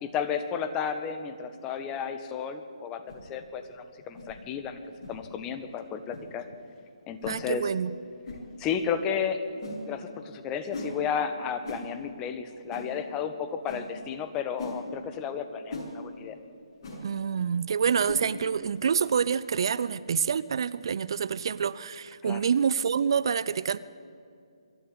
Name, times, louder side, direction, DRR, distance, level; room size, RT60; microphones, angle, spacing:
voice 1, 0.0-4.8 5.1-6.4 7.1-7.7 8.6-9.4 9.9-16.4 22.2-22.4, left 7 dB, 20° left, 1.5 m, -33 dB
sound 1, 3.1-3.2 4.1-4.3 5.0-5.2 6.1-6.2 7.2-7.4 8.2-8.4 9.6-9.8 10.7-10.9 11.6-11.8 12.7-12.9 13.7-13.8 14.6-14.8 15.7-15.9 16.8-17.0 18.0-18.3, left 2 dB, 40° left, 6.9 m, -38 dB
voice 2, 7.3-7.9 17.0-23.8, right 7 dB, 50° right, 0.5 m, -27 dB
24.0 x 13.0 x 9.5 m
figure-of-eight pair, 140°, 3 cm